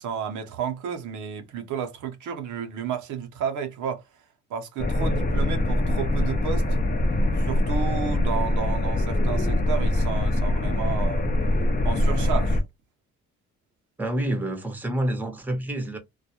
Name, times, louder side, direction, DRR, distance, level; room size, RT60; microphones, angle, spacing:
voice 1, 0.0-4.2 4.5-6.7 7.4-11.3 11.8-12.6, right 7 dB, 75° right, 0.7 m, -32 dB
sound 1, 4.8-12.6, left 1 dB, 30° left, 0.6 m, -23 dB
voice 2, 14.0-16.0, right 1 dB, 5° right, 0.7 m, -28 dB
2.2 x 2.2 x 2.7 m
cardioid pair, 90°, 30 cm